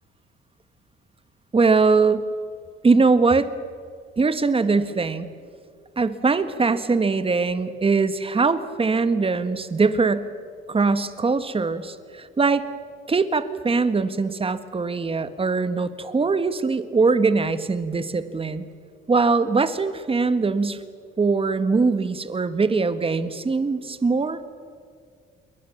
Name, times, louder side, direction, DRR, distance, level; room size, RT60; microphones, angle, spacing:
voice 1, 1.5-2.3 2.8-3.5 4.2-5.3 6.0-10.3 10.7-12.6 13.1-18.7 19.1-20.8 21.2-24.5, right 4 dB, 30° right, 11 dB, 1.7 m, -21 dB
28.0 x 22.5 x 7.3 m, 2.1 s
cardioid pair, 90°, 20 cm